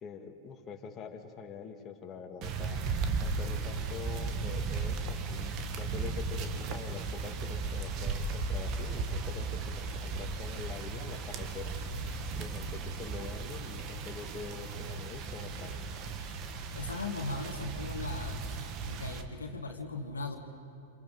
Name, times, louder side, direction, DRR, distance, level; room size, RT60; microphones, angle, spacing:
voice 1, 0.0-2.8 3.2-5.5 5.7-11.8 12.4-15.8, left 6 dB, 30° left, 3 dB, 1.8 m, -45 dB
sound 1, 2.4-19.2, right 4 dB, 40° right, 1.5 m, -36 dB
sound 2, 6.4-14.6, right 1 dB, 25° right, 5.6 m, -55 dB
voice 2, 16.8-18.4 18.8-20.4, left 3 dB, 80° left, 4 dB, 1.7 m, -38 dB
29.0 x 26.5 x 3.9 m, 2.6 s
figure-of-eight pair, 95°, 0 cm